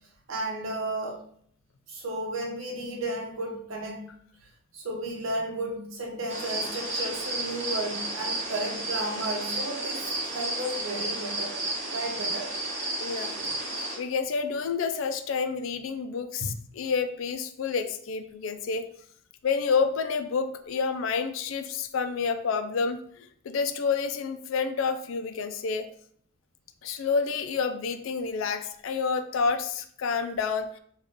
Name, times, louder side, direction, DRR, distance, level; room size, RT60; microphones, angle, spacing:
voice 1, 0.3-1.2 1.9-4.1 4.7-11.6 11.9-12.5 16.4-16.5, right 1 dB, 70° right, 0.8 m, -33 dB
sound 1, 6.3-14.0, right 2 dB, 35° right, 0.9 m, -32 dB
voice 2, 13.0-13.4 14.0-18.9 19.4-25.9 26.8-30.8, left 5 dB, 70° left, 0.4 m, -29 dB
3.9 x 2.4 x 3.6 m
head